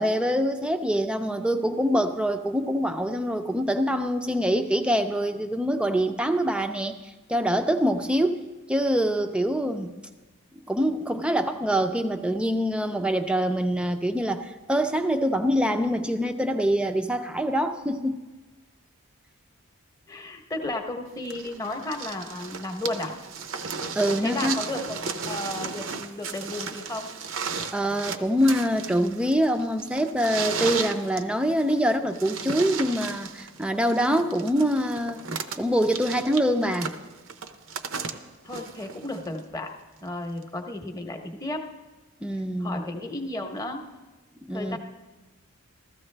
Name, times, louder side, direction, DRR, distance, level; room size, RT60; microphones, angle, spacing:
voice 1, 0.0-6.9 7.3-8.4 8.7-9.9 10.7-18.2 23.9-24.6 27.7-35.2 35.6-36.9 42.2-42.8 44.5-44.8, equal, 5° right, 7 dB, 0.5 m, -25 dB
voice 2, 20.1-23.1 23.8-24.0 24.2-25.0 25.3-27.1 38.4-39.7 40.0-41.7 42.6-43.8 44.5-44.8, left 2 dB, 15° left, 4 dB, 0.9 m, -33 dB
sound 1, 21.3-39.4 40.4-40.5, right 5 dB, 60° right, 0.7 m, -35 dB
15.0 x 14.0 x 3.3 m, 1.2 s
head